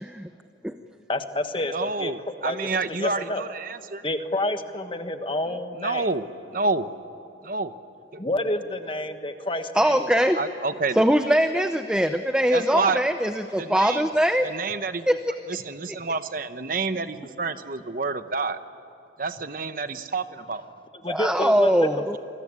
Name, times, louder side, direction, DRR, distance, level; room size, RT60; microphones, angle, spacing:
voice 1, 1.1-2.1 2.4-3.4 4.0-6.1 8.2-10.1 17.2-17.3 20.9-22.2, left 1 dB, 30° left, 8 dB, 1.4 m, -29 dB
voice 2, 1.7-4.0 5.8-6.3 6.5-6.9 7.4-7.7 10.3-11.0 12.5-13.0 13.6-14.1 14.4-15.2 15.5-18.6 19.2-20.6, right 3 dB, 50° right, 11 dB, 1.0 m, -28 dB
voice 3, 9.7-10.4 10.9-14.5 15.1-15.2 15.5-15.6 21.1-22.2, equal, 5° right, 8 dB, 0.6 m, -22 dB
28.5 x 21.5 x 9.7 m, 2.7 s
head